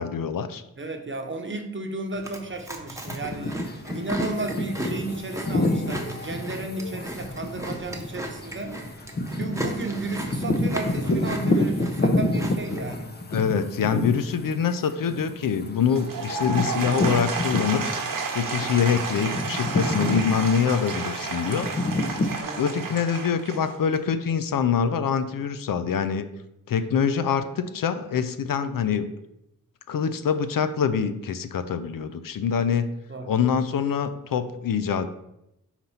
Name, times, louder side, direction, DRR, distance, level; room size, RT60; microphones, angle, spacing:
voice 1, 0.0-0.6 13.3-17.9 18.3-21.7 22.6-26.3 26.7-29.1 29.9-32.9 33.2-35.1, left 7 dB, 70° left, 11 dB, 0.5 m, -25 dB
voice 2, 0.8-3.6 3.9-8.8 9.3-13.1 22.4-22.9 33.1-33.3, right 2 dB, 35° right, 4 dB, 0.9 m, -33 dB
Chewing mastication, 2.1-12.9, right 1 dB, 10° right, 1.0 m, -36 dB
sound 1, 3.1-18.2 18.6-22.4, left 1 dB, 30° left, 0.7 m, -29 dB
Applause / Crowd, 15.9-24.1, right 4 dB, 70° right, 1.0 m, -31 dB
4.4 x 4.0 x 5.6 m, 0.86 s
cardioid pair, 75°, 35 cm